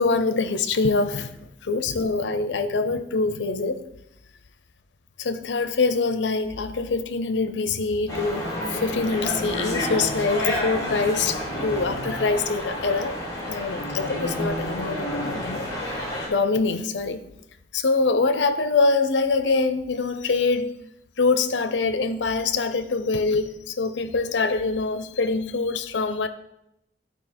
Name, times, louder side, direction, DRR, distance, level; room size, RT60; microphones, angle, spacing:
voice 1, 0.0-1.3 1.6-3.8 5.2-13.2 13.5-16.0 16.3-17.2 17.7-20.7 21.2-26.3, left 3 dB, 80° left, 0.6 m, -24 dB
sound 1, 8.1-16.3, left 1 dB, 20° left, 2.4 m, -29 dB
10.5 x 4.6 x 4.3 m
head